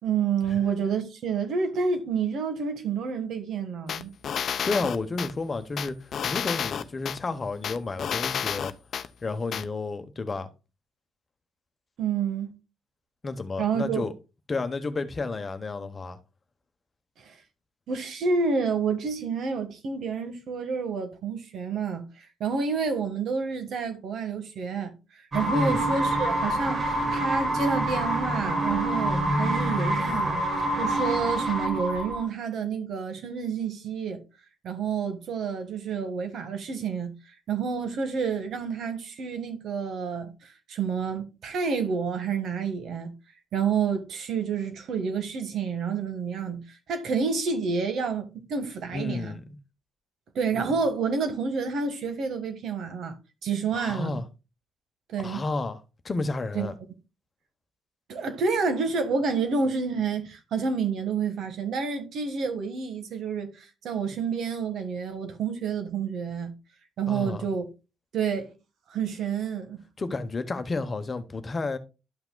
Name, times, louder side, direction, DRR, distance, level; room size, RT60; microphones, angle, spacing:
voice 1, 0.0-4.1 12.0-12.5 13.6-14.0 17.2-17.4 17.9-24.9 25.3-34.2 34.6-37.1 37.5-43.1 43.5-49.4 50.3-53.1 53.4-54.1 55.1-55.4 56.5-56.7 58.1-66.5 67.0-67.6 68.1-68.5 68.9-69.8, right 5 dB, 70° right, 1.5 m, -29 dB
sound 1, 3.9-5.3 5.8-7.2 7.6-9.1 9.5-9.6, left 8 dB, 60° left, 0.6 m, -30 dB
voice 2, 4.6-8.7 9.2-10.5 13.2-14.1 14.5-16.2 25.5-25.8 48.9-49.4 53.7-54.2 55.2-56.7 67.1-67.5 70.0-71.8, left 3 dB, 30° left, 0.9 m, -31 dB
sound 2, 25.3-32.2, right 1 dB, 45° right, 3.3 m, -26 dB
12.0 x 5.8 x 2.2 m
cardioid pair, 90°, 0 cm